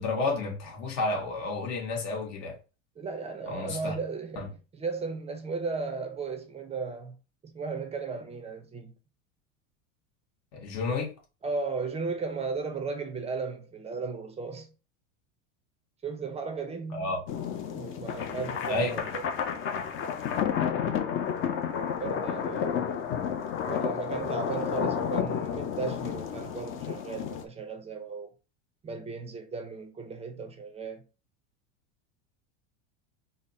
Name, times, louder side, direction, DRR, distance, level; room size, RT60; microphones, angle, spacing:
voice 1, 0.0-2.6 3.5-3.9 4.4-4.5 10.5-11.1 16.9-17.2 18.7-19.0, left 3 dB, 65° left, 1.7 m, -31 dB
voice 2, 3.0-7.2 7.4-8.9 11.4-14.7 16.0-17.1 17.7-19.2 22.0-22.9 23.6-28.3 28.8-31.0, right 4 dB, 15° right, 0.5 m, -35 dB
sound 1, 17.3-27.4, left 8 dB, 30° left, 0.6 m, -31 dB
4.0 x 2.1 x 4.1 m
supercardioid pair, 130°, 39 cm